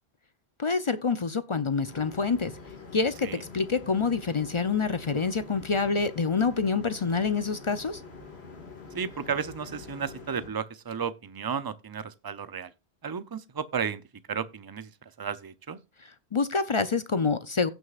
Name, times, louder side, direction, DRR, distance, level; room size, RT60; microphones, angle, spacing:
voice 1, 0.6-2.5 2.9-8.0 16.3-17.7, left 4 dB, 40° left, 0.5 m, -27 dB
sound 1, 1.8-10.5, left 4 dB, 70° left, 2.2 m, -45 dB
voice 2, 8.9-12.7 13.0-14.0 14.3-15.8, right 6 dB, 25° right, 0.5 m, -33 dB
16.5 x 6.4 x 2.4 m
omnidirectional pair, 1.1 m